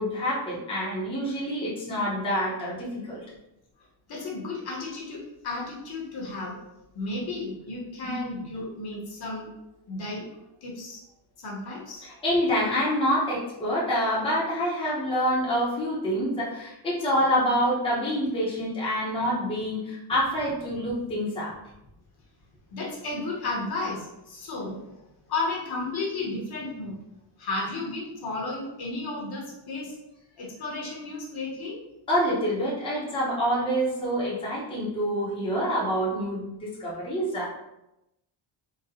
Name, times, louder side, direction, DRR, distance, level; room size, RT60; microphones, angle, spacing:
voice 1, 0.0-3.2 8.0-8.1 12.0-21.5 32.1-37.6, equal, 10° left, -7 dB, 0.6 m, -27 dB
voice 2, 4.1-6.6 6.9-9.5 9.9-10.3 10.6-11.0 11.4-12.1 22.7-24.8 25.3-27.0 27.4-29.9 30.4-31.8, left 2 dB, 50° left, -3 dB, 0.9 m, -33 dB
3.9 x 2.0 x 2.7 m, 0.89 s
wide cardioid pair, 175°, 48 cm